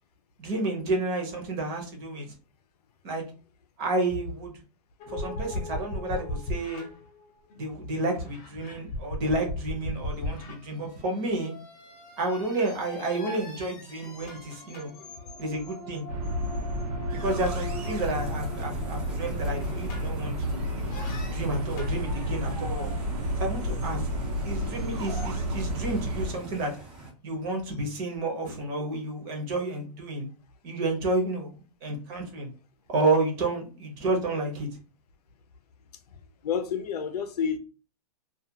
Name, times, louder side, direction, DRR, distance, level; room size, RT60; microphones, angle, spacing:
voice 1, 0.4-2.3 3.0-3.2 3.8-4.5 5.1-6.9 7.6-11.5 12.2-14.9 15.4-16.1 17.1-20.6 21.2-22.9 23.4-24.1 24.4-26.7 27.2-30.3 30.6-32.5 32.9-34.7, right 2 dB, 30° right, 0.8 m, -30 dB
sound 1, 5.0-7.7 8.2-20.4 20.9-22.0, left 1 dB, 35° left, 0.7 m, -39 dB
sound 2, 16.1-26.3, equal, 75° right, 0.9 m, -31 dB
sound 3, 17.2-27.1, right 1 dB, 5° right, 0.5 m, -44 dB
voice 2, 36.4-37.6, left 7 dB, 85° left, 0.6 m, -29 dB
2.4 x 2.3 x 2.7 m
supercardioid pair, 165°, 20 cm